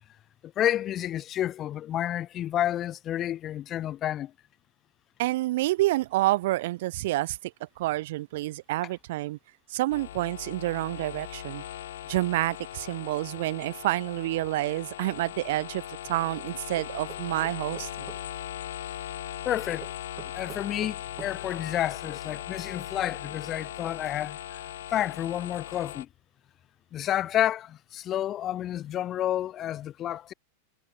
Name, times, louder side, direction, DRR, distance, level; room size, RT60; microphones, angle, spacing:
voice 1, 0.4-4.3 19.4-19.9 20.3-24.6 24.9-26.1 26.9-30.3, left 12 dB, 30° left, 0.6 m, -30 dB
voice 2, 5.2-7.5 7.8-9.4 9.7-11.6 12.1-15.8 16.1-18.1, right 17 dB, 65° right, 0.6 m, -28 dB
sound 1, 9.9-26.0, left 12 dB, 80° left, 7.7 m, -39 dB
sound 2, 16.8-18.2 19.8-21.3, right 11 dB, 30° right, 1.5 m, -45 dB
supercardioid pair, 130°, 0 cm